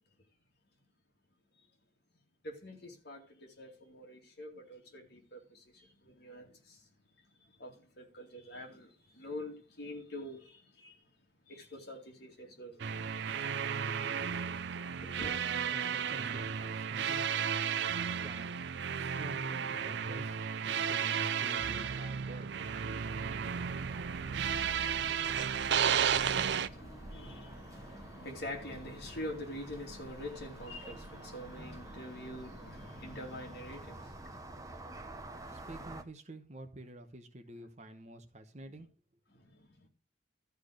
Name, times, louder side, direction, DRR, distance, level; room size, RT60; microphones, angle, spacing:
voice 1, 2.4-6.8 7.6-11.0 11.5-12.8 14.3-14.5 15.0-15.4 26.0-35.7 39.4-39.7, left 1 dB, 55° left, 2.5 m, -46 dB
sound 1, 12.8-26.7, right 7 dB, 60° right, 0.4 m, -33 dB
voice 2, 15.7-17.3 18.2-22.7 35.5-38.9, right 1 dB, 35° right, 1.0 m, -49 dB
sound 2, 23.1-36.0, right 1 dB, 15° right, 0.8 m, -49 dB
13.0 x 4.7 x 6.4 m
head